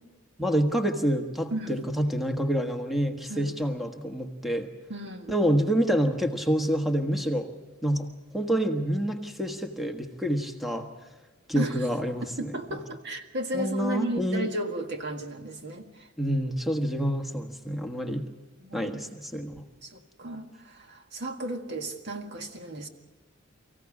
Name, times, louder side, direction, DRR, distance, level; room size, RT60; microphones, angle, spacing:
voice 1, 0.4-4.7 5.3-7.5 7.8-10.9 11.5-12.5 13.5-14.5 16.2-18.3 18.7-19.1 19.3-19.6, equal, ahead, 5 dB, 1.4 m, -27 dB
voice 2, 1.5-1.8 3.3-3.5 4.9-5.4 11.5-11.9 12.4-16.1 18.6-18.9 19.8-22.9, right 1 dB, 60° right, 5 dB, 1.8 m, -34 dB
24.0 x 15.5 x 8.5 m, 1.2 s
head